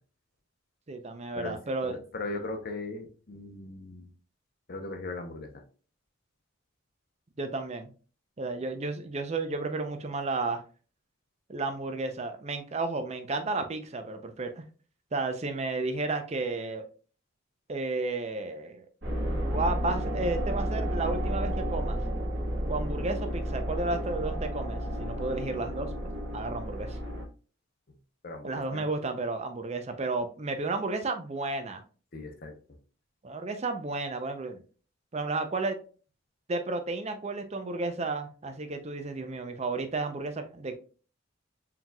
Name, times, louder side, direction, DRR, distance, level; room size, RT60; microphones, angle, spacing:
voice 1, 0.9-2.0 7.4-7.9 8.4-10.6 11.5-14.6 15.1-16.9 17.7-18.9 19.4-22.0 22.7-25.9 26.3-27.0 28.4-31.8 33.2-34.6 35.1-35.8 36.5-40.7, right 3 dB, 30° right, 0.5 m, -32 dB
voice 2, 1.8-4.1 4.7-5.6 28.2-28.9 32.1-32.5, left 2 dB, 50° left, 0.8 m, -38 dB
sound 1, 19.0-27.2, equal, 60° right, 1.4 m, -32 dB
4.5 x 3.8 x 2.3 m
head